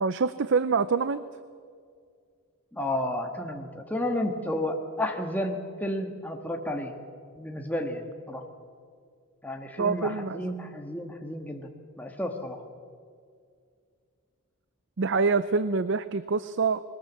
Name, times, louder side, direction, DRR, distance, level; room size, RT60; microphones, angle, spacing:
voice 1, 0.0-1.2 9.8-10.5 15.0-16.8, right 4 dB, 55° right, 13 dB, 0.6 m, -26 dB
voice 2, 2.7-6.9 7.4-8.4 9.4-11.7 12.0-12.6, left 1 dB, 5° left, 3 dB, 1.6 m, -32 dB
21.0 x 20.0 x 7.3 m, 2.1 s
head